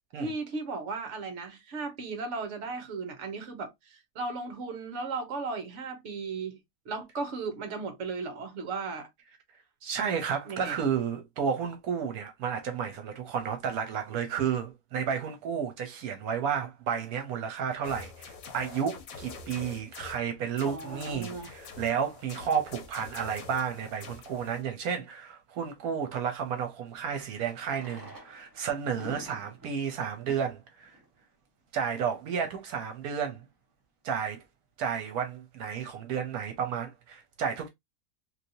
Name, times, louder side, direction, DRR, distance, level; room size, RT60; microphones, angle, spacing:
voice 1, 0.2-6.6 6.9-9.1 10.5-10.8 20.6-21.5, right 4 dB, 55° right, 1.1 m, -36 dB
voice 2, 9.8-31.0 31.7-33.4 34.0-34.4 34.8-37.7, right 7 dB, 80° right, 1.2 m, -32 dB
sound 1, 17.8-20.2 20.6-24.6, left 5 dB, 65° left, 1.2 m, -46 dB
Fireworks, 27.6-31.2 32.0-32.1 32.3-32.4 32.6-32.7 33.2-33.5, equal, 15° right, 1.3 m, -49 dB
3.2 x 2.7 x 2.6 m
omnidirectional pair, 1.6 m